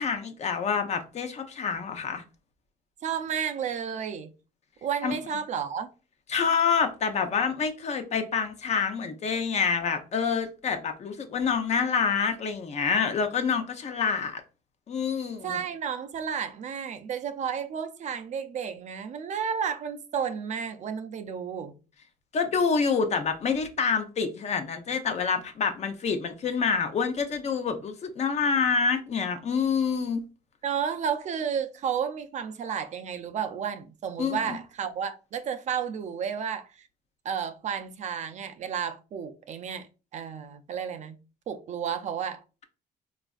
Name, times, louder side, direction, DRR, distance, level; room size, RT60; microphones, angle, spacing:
voice 1, 0.0-2.2 5.0-5.2 6.3-14.4 14.9-15.6 22.3-30.3 34.2-34.6, left 5 dB, 40° left, 0.6 m, -27 dB
voice 2, 3.0-4.3 4.8-5.9 15.4-21.8 30.6-36.9 37.2-39.9 40.1-41.2 41.5-42.4, right 7 dB, 45° right, 0.4 m, -32 dB
4.1 x 2.4 x 2.3 m
cardioid pair, 110°, 17 cm